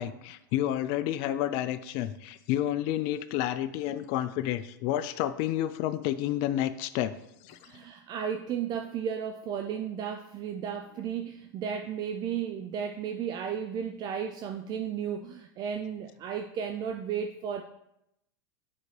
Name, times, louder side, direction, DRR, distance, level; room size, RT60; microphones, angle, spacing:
voice 1, 0.0-7.1 7.4-7.6, left 12 dB, 55° left, 12 dB, 0.4 m, -30 dB
voice 2, 7.6-17.6, right 8 dB, 40° right, 6 dB, 0.5 m, -34 dB
7.6 x 4.6 x 3.3 m, 0.83 s
hypercardioid pair, 105°, 11 cm